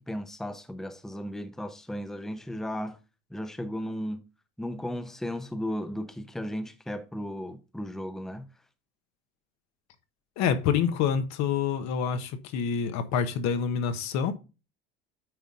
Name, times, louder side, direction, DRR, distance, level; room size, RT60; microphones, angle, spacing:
voice 1, 0.0-3.0 3.3-4.2 4.6-8.5, equal, ahead, 0.8 m, -35 dB
voice 2, 10.4-14.3, left 7 dB, 65° left, 1.3 m, -27 dB
9.2 x 4.0 x 3.8 m
supercardioid pair, 90°, 30 cm